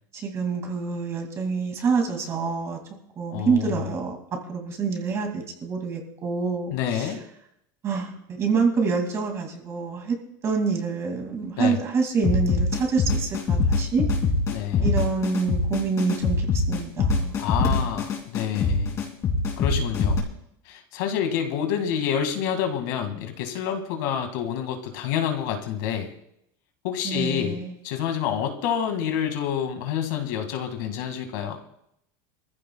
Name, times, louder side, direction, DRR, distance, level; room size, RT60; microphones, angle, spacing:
voice 1, 0.1-2.8 3.2-4.2 4.5-7.1 7.8-10.2 10.4-14.1 14.8-17.4 17.6-17.9 27.0-27.7, right 5 dB, 25° right, 2 dB, 2.5 m, -27 dB
voice 2, 3.3-3.9 6.7-7.2 11.6-11.8 14.5-14.9 17.4-19.0 19.6-20.2 20.7-26.1 26.8-31.6, left 9 dB, 65° left, 5 dB, 2.1 m, -28 dB
sound 1, 12.2-20.2, left 3 dB, 25° left, 2.8 m, -23 dB
24.5 x 14.5 x 2.3 m, 0.76 s
cardioid pair, 175°, 11 cm